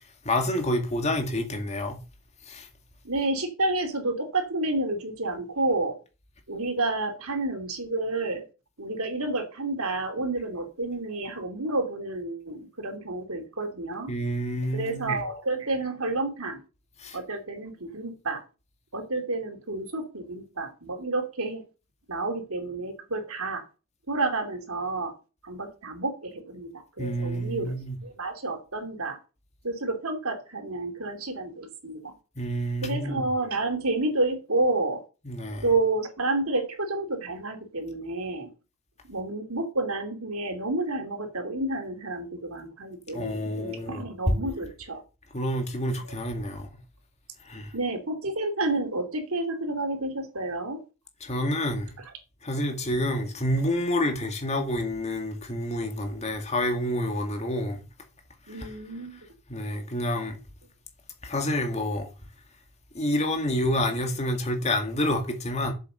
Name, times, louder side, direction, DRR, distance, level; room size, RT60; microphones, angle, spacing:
voice 1, 0.2-2.0 2.5-2.7 14.1-15.2 17.0-17.2 27.0-28.0 32.4-33.3 35.2-35.7 43.1-44.3 45.3-46.7 47.5-47.7 51.2-52.0 52.4-57.8 58.5-58.7 59.5-60.4 61.2-62.1 62.9-65.7, left 1 dB, 30° left, 2.1 m, -28 dB
voice 2, 3.0-6.0 6.5-8.4 8.8-14.1 14.7-16.6 17.1-18.4 18.9-21.6 22.1-23.6 24.1-25.1 25.4-27.7 28.0-29.2 29.6-32.1 32.8-35.0 35.6-38.5 39.1-45.0 47.7-50.8 58.5-59.2, right 2 dB, 75° right, 2.8 m, -30 dB
7.6 x 7.4 x 6.8 m
head